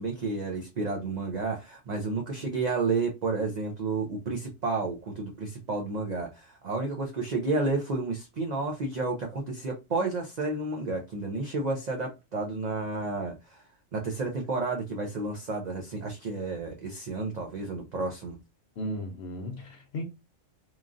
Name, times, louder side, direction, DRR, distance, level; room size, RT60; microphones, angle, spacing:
voice 1, 0.0-18.4, right 3 dB, 55° right, 0.5 m, -31 dB
voice 2, 18.8-20.0, equal, 60° left, 0.8 m, -35 dB
3.0 x 2.4 x 2.4 m
omnidirectional pair, 1.3 m